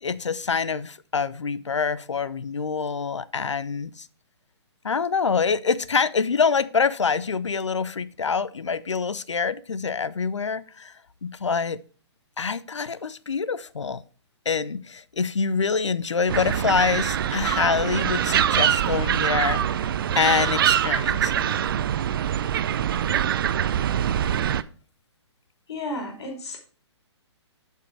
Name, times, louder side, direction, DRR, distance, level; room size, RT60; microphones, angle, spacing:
voice 1, 0.0-4.1 4.8-10.9 11.2-11.8 12.4-14.0 14.5-19.9 20.2-21.5, left 5 dB, 80° left, 17 dB, 0.6 m, -25 dB
sound 1, 16.3-24.6, right 10 dB, 50° right, 0.5 m, -24 dB
voice 2, 25.7-26.6, left 2 dB, 65° left, 3 dB, 3.0 m, -32 dB
8.0 x 5.6 x 4.6 m, 0.39 s
figure-of-eight pair, 130°, 15 cm